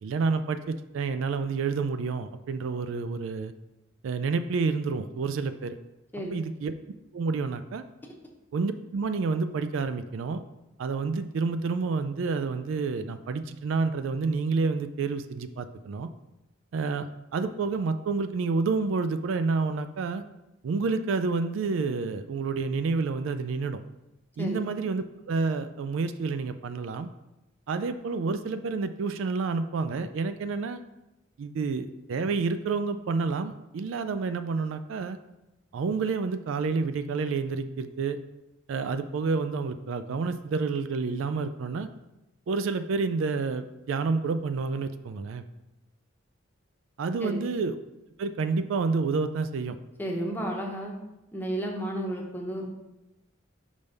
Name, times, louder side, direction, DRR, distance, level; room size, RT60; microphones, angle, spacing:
voice 1, 0.0-3.5 4.0-5.8 6.3-6.7 7.1-7.8 8.5-10.4 10.8-16.1 16.7-17.1 17.3-20.2 20.6-23.8 24.4-27.1 27.7-30.8 31.4-35.2 35.7-38.2 38.7-41.9 42.5-45.4 47.0-47.8 48.2-49.8, right 4 dB, 70° right, 10 dB, 0.3 m, -29 dB
voice 2, 50.0-50.9 51.3-52.7, right 1 dB, 10° left, 0 dB, 0.8 m, -32 dB
5.2 x 3.4 x 5.3 m, 0.95 s
head